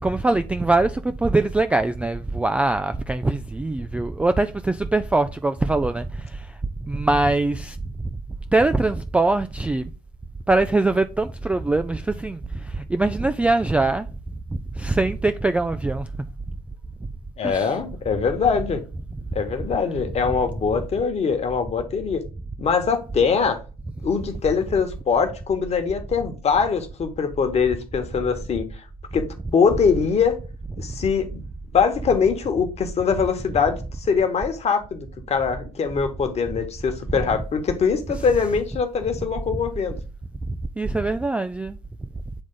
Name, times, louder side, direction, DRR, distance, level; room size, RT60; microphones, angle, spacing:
voice 1, 0.0-8.1 8.5-9.9 10.5-14.1 14.5-16.1 17.4-17.7 40.5-41.8, right 2 dB, 5° right, 0.3 m, -23 dB
voice 2, 17.4-18.8 19.3-22.2 22.6-23.6 24.0-28.8 29.1-30.3 30.8-31.4 31.7-40.0, left 6 dB, 35° left, 1.3 m, -22 dB
7.9 x 3.6 x 3.8 m
figure-of-eight pair, 65°, 19 cm